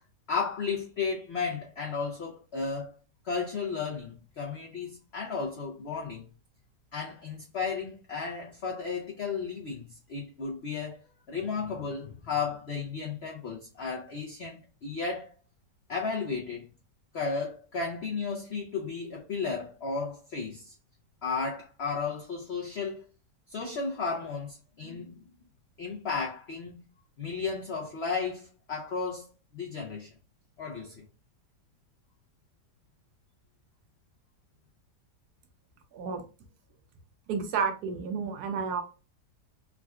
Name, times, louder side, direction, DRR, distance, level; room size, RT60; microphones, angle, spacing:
voice 1, 0.3-2.9 3.2-6.3 6.9-15.4 15.9-16.7 17.1-20.7 21.2-23.1 23.5-25.2 25.8-26.8 27.2-30.1 30.6-31.0, left 5 dB, 80° left, 0.5 m, -34 dB
voice 2, 37.3-38.8, right 5 dB, 70° right, 1.1 m, -31 dB
3.6 x 2.1 x 2.3 m
omnidirectional pair, 1.8 m